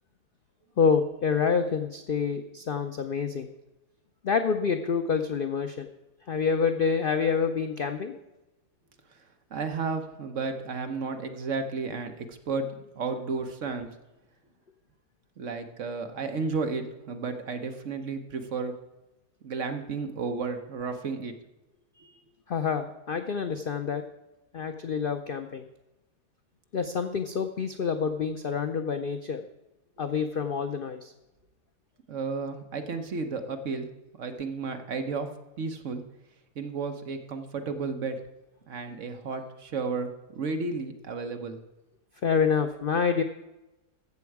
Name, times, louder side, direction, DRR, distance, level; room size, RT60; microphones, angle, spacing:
voice 1, 0.8-3.5 4.2-5.9 6.3-8.1 22.0-22.2 22.5-24.0 24.5-25.7 26.7-29.5 30.0-31.1 42.2-43.2, left 6 dB, 75° left, 7 dB, 0.5 m, -27 dB
voice 2, 9.1-12.7 12.9-13.9 15.4-18.7 19.4-21.3 32.1-33.9 34.2-35.3 35.6-36.0 36.5-38.2 38.7-41.6, right 4 dB, 55° right, 6 dB, 1.2 m, -33 dB
14.0 x 7.6 x 4.7 m, 1.0 s
omnidirectional pair, 1.7 m